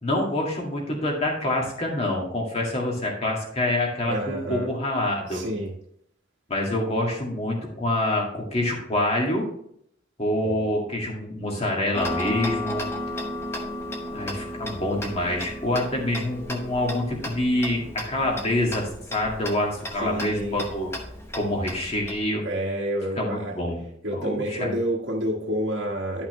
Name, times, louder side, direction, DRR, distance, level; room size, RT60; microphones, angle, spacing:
voice 1, 0.0-5.4 6.5-9.4 10.2-12.9 14.1-20.9 21.3-22.4 23.2-23.8 24.1-24.7, left 1 dB, 30° left, -1 dB, 2.0 m, -26 dB
voice 2, 4.1-4.7 5.3-5.7 10.4-10.7 20.0-20.6 22.4-23.5 24.0-26.3, equal, 70° right, -4 dB, 1.3 m, -29 dB
Tick-tock, 11.9-22.2, left 1 dB, 15° left, 1.0 m, -34 dB
10.5 x 5.7 x 3.1 m, 0.69 s
head